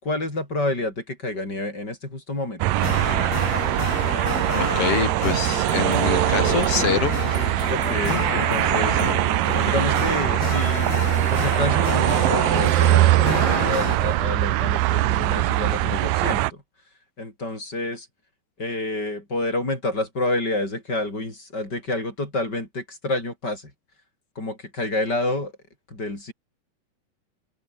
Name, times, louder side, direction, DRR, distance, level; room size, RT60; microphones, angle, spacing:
voice 1, 0.0-2.6 7.7-9.0 9.6-11.0 11.3-16.6 17.2-18.1 18.6-23.7 24.4-25.5 25.9-26.3, left 2 dB, 25° left, 7.8 m, -28 dB
sound 1, 2.6-16.5, right 17 dB, 75° right, 2.2 m, -22 dB
sound 2, 2.8-14.0, left 7 dB, 75° left, 5.4 m, -30 dB
voice 2, 4.6-7.4 15.7-16.0, left 6 dB, 50° left, 2.1 m, -26 dB
open air
omnidirectional pair, 4.4 m